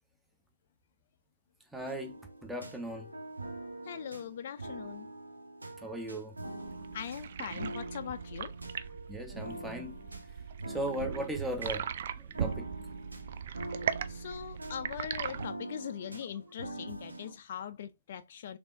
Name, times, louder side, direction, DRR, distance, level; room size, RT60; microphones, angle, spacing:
voice 1, 1.7-2.2 2.4-3.1 5.8-6.3 6.6-6.7 9.1-10.0 10.7-11.8 12.4-12.7, right 1 dB, 5° right, 0.7 m, -37 dB
sound 1, 1.7-17.3, right 2 dB, 80° right, 1.2 m, -44 dB
voice 2, 3.8-5.1 6.9-8.5 14.1-18.6, left 9 dB, 45° left, 0.3 m, -41 dB
sound 2, 6.6-15.5, right 8 dB, 50° right, 0.4 m, -39 dB
3.4 x 3.4 x 2.5 m
figure-of-eight pair, 125°, 0 cm